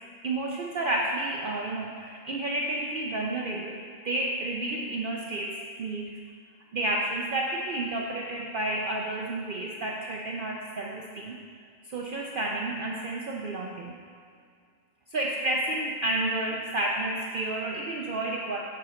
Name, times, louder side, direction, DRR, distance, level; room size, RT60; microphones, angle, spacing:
voice 1, 0.2-6.2 6.7-11.4 11.9-13.9 15.1-18.6, right 2 dB, 55° right, -1 dB, 0.6 m, -31 dB
7.6 x 6.2 x 4.2 m, 2.1 s
omnidirectional pair, 1.3 m